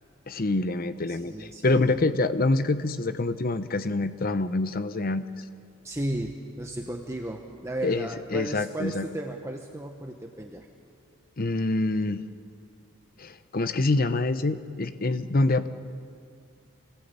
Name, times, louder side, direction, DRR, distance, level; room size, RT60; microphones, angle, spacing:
voice 1, 0.3-5.3 7.8-9.0 11.4-12.2 13.2-15.7, left 2 dB, 40° left, 11 dB, 0.7 m, -26 dB
voice 2, 1.1-2.0 5.8-10.7, right 1 dB, 15° right, 2 dB, 1.0 m, -35 dB
26.0 x 18.5 x 8.3 m, 2.3 s
head